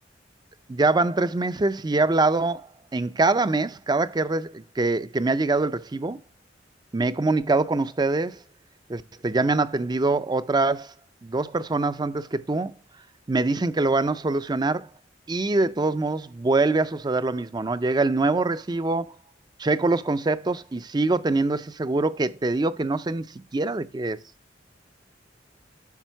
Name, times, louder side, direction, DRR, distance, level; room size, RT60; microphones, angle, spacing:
voice 1, 0.7-6.2 6.9-8.4 8.9-10.9 11.2-12.7 13.3-14.9 15.3-19.2 19.6-24.2, right 3 dB, 25° right, 0.4 m, -24 dB
12.0 x 5.0 x 4.5 m
head